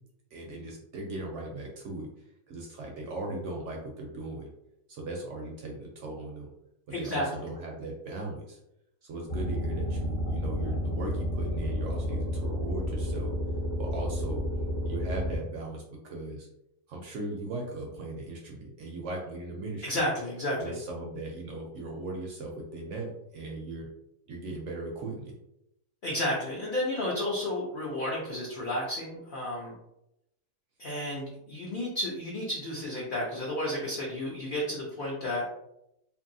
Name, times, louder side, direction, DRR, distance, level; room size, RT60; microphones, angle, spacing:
voice 1, 0.3-2.1 2.5-4.5 4.9-6.5 6.9-8.6 9.0-13.3 13.8-14.4 14.8-16.5 16.9-20.0 20.6-23.9 24.3-25.3, right 2 dB, 65° right, 0 dB, 0.7 m, -38 dB
voice 2, 6.9-7.3 19.8-20.8 26.0-29.7 30.8-35.4, left 1 dB, 60° left, -4 dB, 0.5 m, -32 dB
sound 1, 9.3-15.4, equal, 35° left, 0.9 m, -31 dB
2.8 x 2.6 x 2.6 m, 0.83 s
omnidirectional pair, 1.6 m